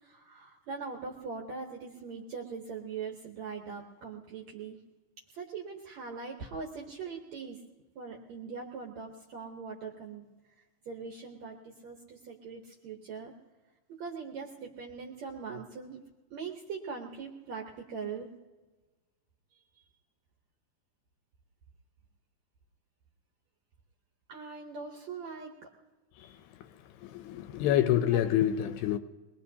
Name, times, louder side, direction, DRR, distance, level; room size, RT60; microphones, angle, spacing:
voice 1, 0.0-4.8 5.3-7.6 7.9-10.3 10.8-13.3 13.9-16.0 16.3-18.3 19.5-19.9 24.3-25.7 28.1-28.3, right 5 dB, 70° right, 1.7 m, -41 dB
voice 2, 27.0-29.0, left 11 dB, 80° left, 2.3 m, -27 dB
23.0 x 20.0 x 2.8 m
omnidirectional pair, 4.6 m